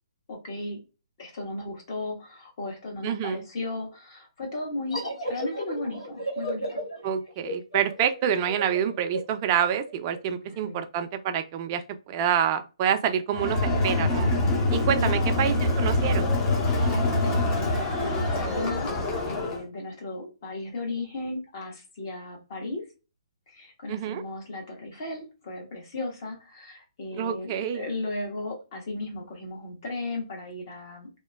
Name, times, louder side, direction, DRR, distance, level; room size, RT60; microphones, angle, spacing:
voice 1, 0.3-0.8 1.2-6.8 10.4-10.8 14.5-14.7 15.0-15.5 16.7-22.9 23.5-31.1, left 2 dB, 45° left, 1.2 m, -36 dB
voice 2, 3.0-3.4 7.0-14.3 14.7-16.3 23.9-24.2 27.2-27.8, right 9 dB, 30° right, 0.4 m, -27 dB
sound 1, 4.9-10.2, right 1 dB, 85° left, 1.3 m, -35 dB
Crowd, 13.3-19.6, left 2 dB, 20° left, 0.6 m, -25 dB
2.8 x 2.1 x 2.3 m
hypercardioid pair, 140°, 3 cm